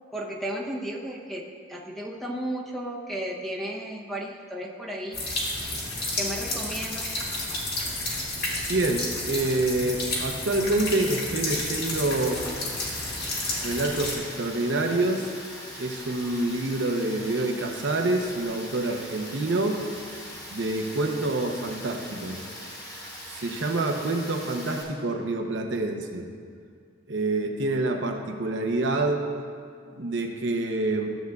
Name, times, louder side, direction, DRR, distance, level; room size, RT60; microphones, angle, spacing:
voice 1, 0.1-5.2 6.2-7.1, right 1 dB, ahead, -2 dB, 0.7 m, -34 dB
sound 1, 5.1-14.1, left 2 dB, 55° left, 1.8 m, -31 dB
voice 2, 8.7-12.4 13.6-15.3 15.8-19.8 20.5-22.4 23.3-26.3 27.1-29.3 29.9-31.1, right 2 dB, 65° right, 3 dB, 0.7 m, -27 dB
Rain, 12.2-24.8, equal, 20° left, 1.2 m, -41 dB
13.5 x 7.9 x 2.3 m, 2.2 s
head